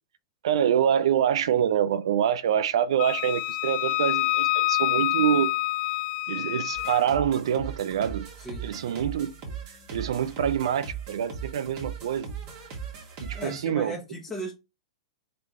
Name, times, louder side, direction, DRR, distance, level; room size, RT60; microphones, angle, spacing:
voice 1, 0.4-5.5 6.3-8.3 8.6-9.3 9.9-12.3 13.2-13.9, right 9 dB, 65° right, 0.6 m, -25 dB
Wind instrument woodwind instrument, 3.0-7.0, left 18 dB, 40° left, 0.3 m, -27 dB
sound 1, 6.8-13.6, right 6 dB, 45° right, 2.0 m, -39 dB
voice 2, 13.3-14.5, right 1 dB, 10° left, 1.2 m, -36 dB
3.8 x 3.7 x 3.1 m
hypercardioid pair, 110°, 3 cm